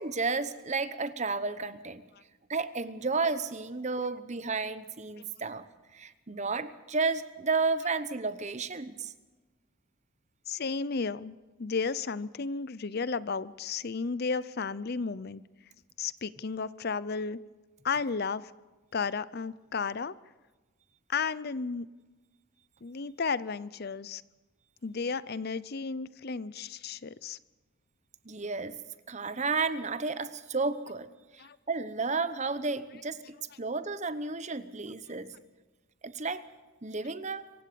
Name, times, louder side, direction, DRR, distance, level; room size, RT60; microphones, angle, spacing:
voice 1, 0.0-2.0 2.5-5.6 5.9-9.1 28.2-28.8 29.1-31.1 31.3-35.3 36.0-36.4 36.8-37.4, right 4 dB, 30° right, 13 dB, 1.0 m, -32 dB
voice 2, 10.5-11.3 11.6-15.4 16.0-17.4 17.8-18.5 18.9-20.1 21.1-21.9 22.8-24.2 24.8-27.4 31.4-31.6, left 5 dB, 45° left, 18 dB, 0.6 m, -33 dB
26.0 x 16.0 x 6.9 m, 1.2 s
head